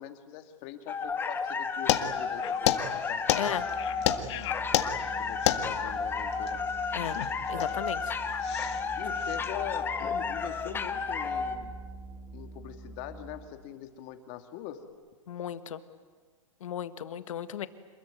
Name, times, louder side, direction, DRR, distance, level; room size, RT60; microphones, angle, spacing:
voice 1, 0.0-3.6 5.2-6.6 9.0-11.7 12.3-14.9, left 11 dB, 40° left, 7 dB, 2.4 m, -42 dB
sound 1, 0.9-11.6, left 5 dB, 10° left, 1.3 m, -32 dB
sound 2, 1.9-9.6, left 12 dB, 55° left, 1.7 m, -31 dB
Organ, 3.4-13.7, right 3 dB, 20° right, 6.1 m, -46 dB
voice 2, 7.5-8.1 15.3-15.8 16.6-17.7, left 10 dB, 70° left, 11 dB, 1.6 m, -35 dB
27.5 x 21.0 x 9.2 m, 1.5 s
hypercardioid pair, 135°, 17 cm